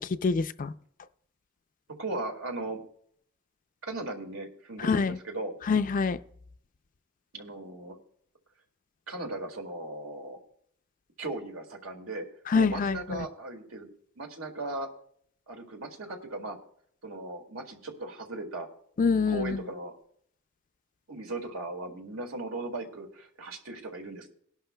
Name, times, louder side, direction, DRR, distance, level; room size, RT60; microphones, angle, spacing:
voice 1, 0.2-0.7 4.8-5.2 5.7-6.2 12.5-13.2 19.0-19.6, left 4 dB, 40° left, 11 dB, 0.4 m, -25 dB
voice 2, 2.0-2.8 3.8-5.6 7.3-8.0 9.1-10.4 11.2-12.3 12.5-13.9 14.2-14.9 15.5-16.6 17.0-18.7 19.3-19.9 21.1-24.3, right 2 dB, 80° right, 3 dB, 2.1 m, -37 dB
18.5 x 11.0 x 2.3 m, 0.65 s
head